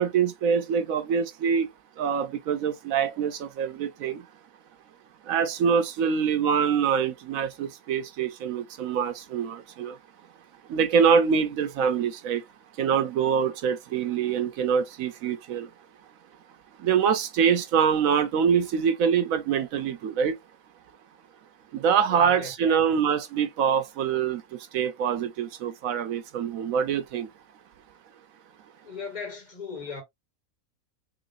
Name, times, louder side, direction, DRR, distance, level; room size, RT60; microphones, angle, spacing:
voice 1, 0.0-1.7 2.0-4.3 5.2-10.0 10.7-12.4 12.8-15.7 16.8-20.4 21.7-27.3, right 7 dB, 75° right, 1.1 m, -25 dB
voice 2, 22.0-22.8 28.8-30.0, left 4 dB, 30° left, 2.0 m, -38 dB
4.0 x 3.2 x 2.5 m
omnidirectional pair, 1.5 m